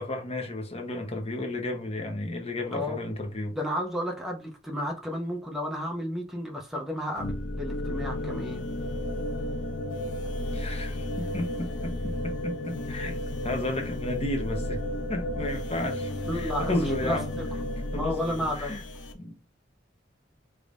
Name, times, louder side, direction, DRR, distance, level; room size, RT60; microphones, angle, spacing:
voice 1, 0.0-3.6 10.5-13.2 13.4-14.8 15.1-17.3 17.9-18.8 19.2-19.4, left 1 dB, 35° left, 0.8 m, -33 dB
voice 2, 3.5-8.7 16.3-17.2 18.0-18.8, equal, ahead, 0.6 m, -32 dB
sound 1, 7.2-19.1, left 1 dB, 70° left, 0.6 m, -33 dB
3.4 x 3.1 x 2.5 m
head